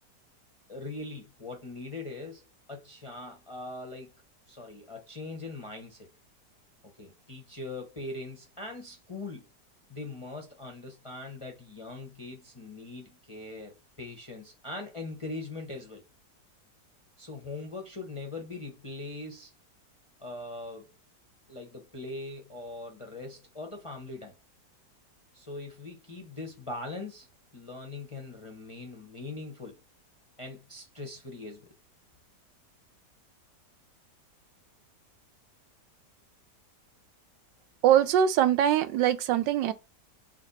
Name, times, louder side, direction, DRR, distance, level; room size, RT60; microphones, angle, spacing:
voice 1, 0.7-4.1 4.5-6.1 7.0-9.4 9.9-16.0 17.2-19.5 20.2-20.9 21.5-24.3 25.3-27.3 27.5-29.8 30.4-31.7, left 2 dB, 35° left, 0.5 m, -41 dB
voice 2, 37.8-39.7, right 10 dB, 90° right, 1.3 m, -22 dB
4.1 x 3.0 x 4.0 m
omnidirectional pair, 1.9 m